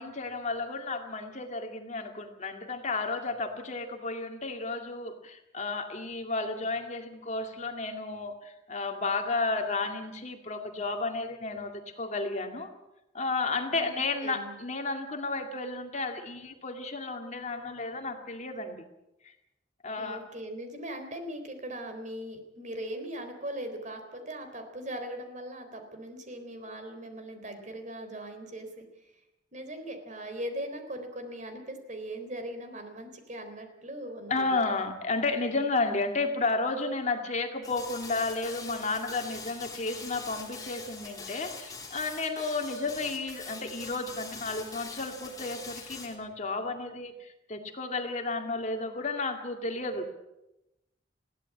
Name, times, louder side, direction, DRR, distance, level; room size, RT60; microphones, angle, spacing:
voice 1, 0.0-12.7 13.1-18.8 19.8-20.2 34.3-50.1, left 3 dB, 40° left, 5 dB, 2.3 m, -32 dB
voice 2, 13.7-14.5 20.0-29.1 29.5-34.6 35.8-36.0, right 1 dB, 45° right, 6 dB, 3.8 m, -40 dB
sound 1, 37.6-46.2, left 4 dB, 20° left, 3.8 m, -43 dB
21.5 x 16.0 x 8.5 m, 0.93 s
head